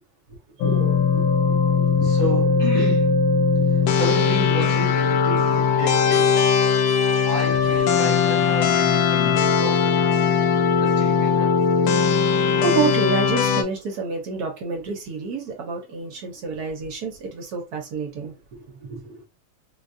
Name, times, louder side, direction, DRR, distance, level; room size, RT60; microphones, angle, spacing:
sound 1, 0.6-13.6, left 6 dB, 80° left, 1.3 m, -19 dB
voice 1, 0.6-1.2 1.5-2.1 3.6-3.9 12.6-19.0, right 5 dB, 65° right, 1.1 m, -29 dB
voice 2, 2.0-3.1 3.7-6.5 7.2-10.0 10.8-11.6, left 1 dB, 60° left, 0.9 m, -31 dB
4.0 x 2.3 x 2.5 m
omnidirectional pair, 2.1 m